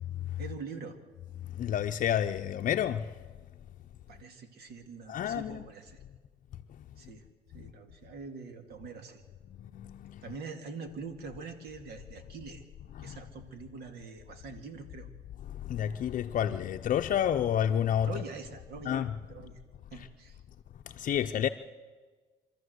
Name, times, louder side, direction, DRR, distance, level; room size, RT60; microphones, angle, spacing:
voice 1, 0.4-1.0 4.1-6.0 7.0-7.2 7.5-9.2 10.2-12.6 13.0-15.1 18.1-19.6 19.9-20.4 21.1-21.3, right 4 dB, 70° right, 2.3 m, -44 dB
voice 2, 1.6-3.1 5.1-5.6 9.6-10.2 13.0-13.2 15.6-18.1 18.9-19.1 21.0-21.5, left 10 dB, 50° left, 0.6 m, -29 dB
25.0 x 13.5 x 8.0 m
cardioid pair, 110°, 17 cm